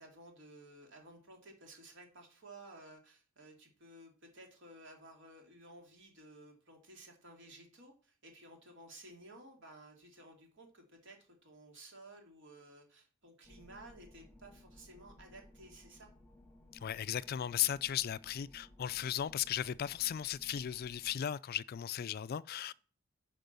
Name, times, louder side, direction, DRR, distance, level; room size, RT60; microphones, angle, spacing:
voice 1, 0.0-16.1, right 1 dB, 60° right, 2.9 m, -55 dB
sound 1, 13.4-21.1, left 1 dB, 10° left, 1.2 m, -60 dB
voice 2, 16.8-22.7, left 10 dB, 45° left, 0.3 m, -36 dB
9.2 x 5.2 x 6.8 m
head